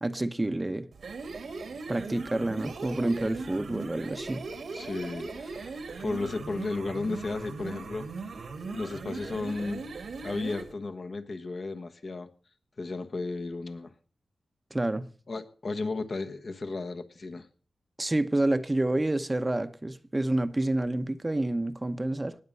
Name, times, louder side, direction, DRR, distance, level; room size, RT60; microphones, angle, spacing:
voice 1, 0.0-0.9 1.9-4.4 14.7-15.1 18.0-22.4, right 1 dB, 20° right, 0.8 m, -28 dB
sound 1, 0.9-10.7, right 4 dB, 80° right, 1.9 m, -39 dB
voice 2, 4.7-8.4 8.7-9.9 10.2-12.3 12.8-13.9 15.3-17.5, left 3 dB, 55° left, 1.3 m, -34 dB
19.0 x 7.3 x 5.5 m
cardioid pair, 70°, 0 cm